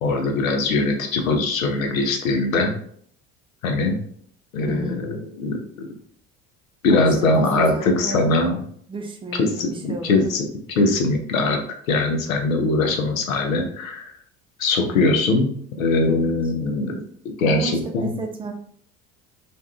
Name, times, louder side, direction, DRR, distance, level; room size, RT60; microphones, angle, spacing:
voice 1, 0.0-2.7 3.6-4.0 4.5-5.9 6.8-8.6 9.4-10.5 10.8-11.6 11.9-14.1 14.6-15.5 15.8-17.0 17.4-18.1, left 2 dB, 85° left, 4 dB, 0.5 m, -21 dB
voice 2, 4.7-5.0 6.9-8.3 8.9-10.5 16.1-16.5 17.5-18.5, right 3 dB, 15° right, 3 dB, 0.3 m, -33 dB
2.5 x 2.2 x 2.2 m, 0.62 s
figure-of-eight pair, 60°, 40 cm